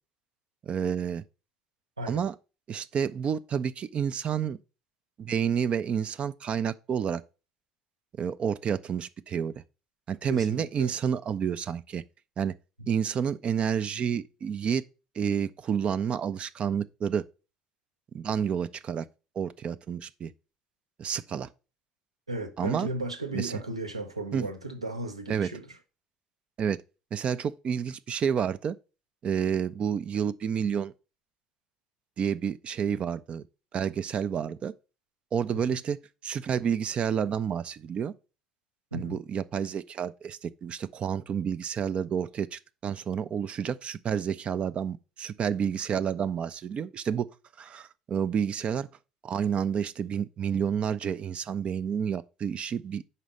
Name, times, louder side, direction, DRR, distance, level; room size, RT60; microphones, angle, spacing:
voice 1, 0.6-1.2 2.1-2.3 2.7-4.6 5.2-7.2 8.2-9.5 10.1-12.0 12.4-12.5 12.9-14.8 15.2-17.3 18.1-19.1 19.4-20.3 21.0-21.5 22.6-22.9 23.3-23.5 24.3-24.5 25.3-25.5 26.6-26.8 27.1-28.7 29.2-30.9 32.2-33.4 33.7-34.7 35.3-36.0 36.2-38.1 38.9-47.3 47.6-48.9 49.2-53.0, right 7 dB, 40° right, 0.4 m, -29 dB
voice 2, 10.3-10.9 22.3-25.8 35.5-35.8 38.9-39.2, right 2 dB, 90° right, 0.7 m, -35 dB
5.5 x 5.0 x 6.3 m
figure-of-eight pair, 60°, 3 cm